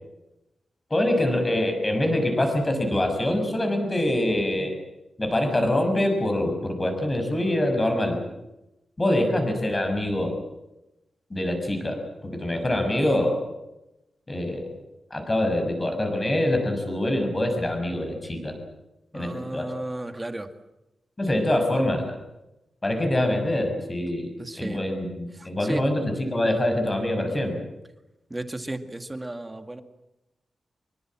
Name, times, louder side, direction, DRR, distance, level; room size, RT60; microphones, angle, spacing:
voice 1, 0.9-4.7 5.2-8.2 9.0-10.3 11.3-13.4 14.3-14.7 15.1-18.5 19.1-19.7 21.2-22.2 22.8-24.3 24.6-27.6, left 1 dB, 20° left, 5 dB, 6.2 m, -25 dB
voice 2, 19.1-20.5 24.4-24.8 25.4-25.9 28.3-29.8, right 1 dB, 15° right, 8 dB, 2.0 m, -34 dB
25.5 x 23.5 x 7.6 m, 0.94 s
wide cardioid pair, 155°, 0 cm